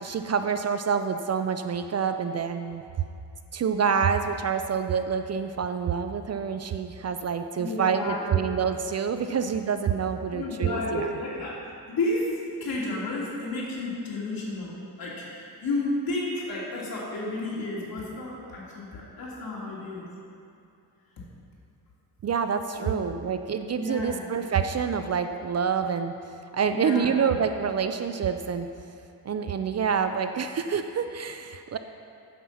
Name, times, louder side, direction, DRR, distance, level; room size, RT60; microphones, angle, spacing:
voice 1, 0.0-2.8 3.5-11.1 22.2-26.2 26.5-28.7 29.3-31.8, right 6 dB, 40° right, 8 dB, 0.4 m, -27 dB
voice 2, 7.6-8.4 9.2-9.4 10.3-11.6 11.9-20.0 22.8-23.1 23.8-24.3 26.7-27.2, left 2 dB, 65° left, -5 dB, 2.7 m, -32 dB
9.4 x 7.5 x 5.6 m, 2.6 s
wide cardioid pair, 120°, 39 cm